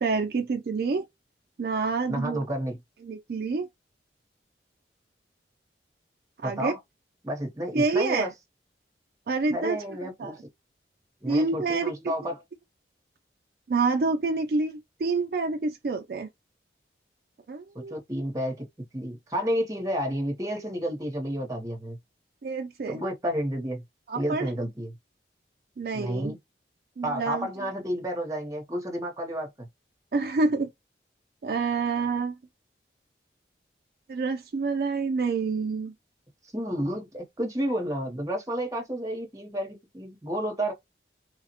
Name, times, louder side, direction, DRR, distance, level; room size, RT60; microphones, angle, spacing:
voice 1, 0.0-1.1 1.6-2.4 3.0-3.7 6.4-6.7 7.7-8.3 9.3-10.4 11.3-12.1 13.7-16.3 17.5-17.9 22.4-23.0 24.1-24.5 25.8-26.4 27.0-27.5 30.1-30.7 31.4-32.3 34.1-35.9, right 4 dB, 55° right, 0.4 m, -27 dB
voice 2, 2.1-2.8 6.4-6.8 7.2-8.3 9.5-10.4 11.2-12.4 17.7-18.7 18.9-22.0 22.9-23.8 24.1-25.0 25.9-26.4 27.0-29.7 36.5-40.7, equal, 20° right, 0.8 m, -31 dB
3.2 x 2.1 x 2.8 m
head